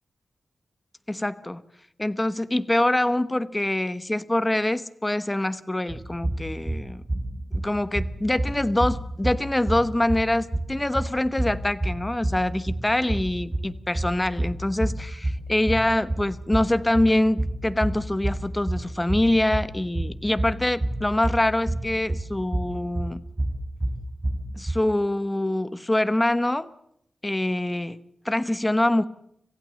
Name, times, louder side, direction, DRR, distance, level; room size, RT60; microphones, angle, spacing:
voice 1, 1.1-1.6 2.0-7.0 7.5-23.2 24.6-26.7 27.2-28.0 28.2-29.0, left 1 dB, 15° left, 13 dB, 1.0 m, -24 dB
sound 1, 5.9-24.7, right 1 dB, 25° right, 4.4 m, -30 dB
26.5 x 15.5 x 7.5 m, 0.74 s
wide cardioid pair, 125°, 0 cm